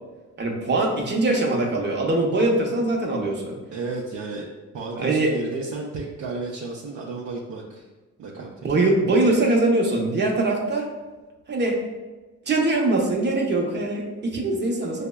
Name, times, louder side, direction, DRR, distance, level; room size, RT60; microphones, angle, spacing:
voice 1, 0.4-3.6 5.0-5.3 8.6-10.9 11.5-11.8 12.5-15.1, right 2 dB, 35° right, 1 dB, 0.7 m, -22 dB
voice 2, 3.7-4.5 4.7-7.8 8.2-8.7, right 3 dB, 70° right, -3 dB, 0.6 m, -33 dB
5.6 x 2.1 x 2.2 m, 1.2 s
cardioid pair, 90°, 30 cm